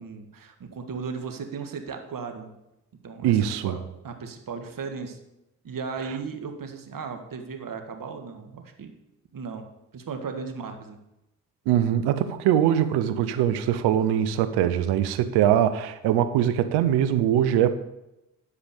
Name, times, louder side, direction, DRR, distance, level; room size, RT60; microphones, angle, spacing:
voice 1, 0.0-2.5 3.0-5.2 5.6-8.9 9.3-9.6 9.9-11.0, right 5 dB, 55° right, 1.9 m, -36 dB
voice 2, 3.2-3.8 11.7-17.7, right 10 dB, 85° right, 0.8 m, -22 dB
13.5 x 5.1 x 7.0 m
hypercardioid pair, 40°, 39 cm